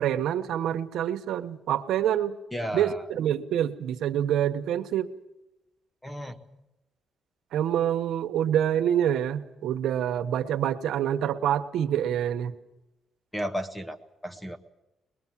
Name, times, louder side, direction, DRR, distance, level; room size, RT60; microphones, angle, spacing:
voice 1, 0.0-2.4 2.7-5.1 7.5-12.5, right 10 dB, 85° right, 8 dB, 1.1 m, -26 dB
voice 2, 2.5-3.1 6.0-6.4 13.3-14.0 14.2-14.6, equal, 5° left, 9 dB, 1.3 m, -33 dB
22.0 x 21.0 x 7.4 m, 0.94 s
cardioid pair, 135°, 0 cm